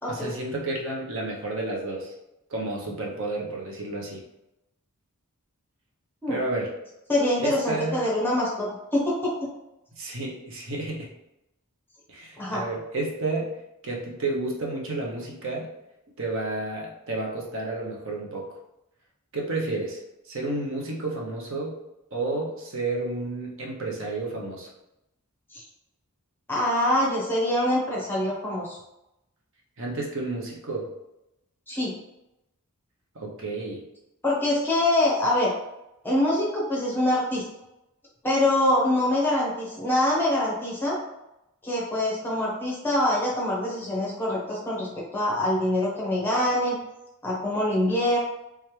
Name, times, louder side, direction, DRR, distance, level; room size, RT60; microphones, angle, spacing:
voice 1, 0.1-2.1 2.5-4.2 6.3-6.7 7.4-8.0 10.0-11.1 12.1-13.5 13.8-15.7 16.2-18.6 19.3-20.0 20.2-21.8 22.1-24.7 29.8-30.9 33.1-33.8, right 2 dB, 60° right, -2 dB, 0.8 m, -31 dB
voice 2, 7.1-9.3 12.4-12.6 25.5-25.6 26.5-28.8 31.7-31.9 34.2-35.5 36.0-37.4 38.2-41.0 41.6-46.8 47.2-48.2, left 1 dB, 10° left, -4 dB, 0.9 m, -24 dB
3.4 x 3.3 x 3.1 m, 0.90 s
head